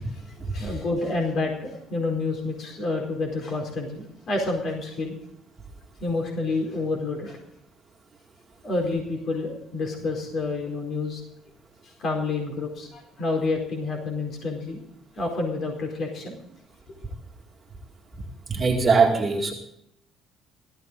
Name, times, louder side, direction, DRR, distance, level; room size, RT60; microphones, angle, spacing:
voice 1, 0.0-5.1 6.0-7.4 8.6-11.2 11.8-14.8 15.2-16.4, left 3 dB, 45° left, 1 dB, 4.5 m, -29 dB
voice 2, 18.5-19.5, right 4 dB, 25° right, 0 dB, 2.3 m, -21 dB
17.5 x 14.0 x 3.9 m, 0.74 s
cardioid pair, 140°, 0 cm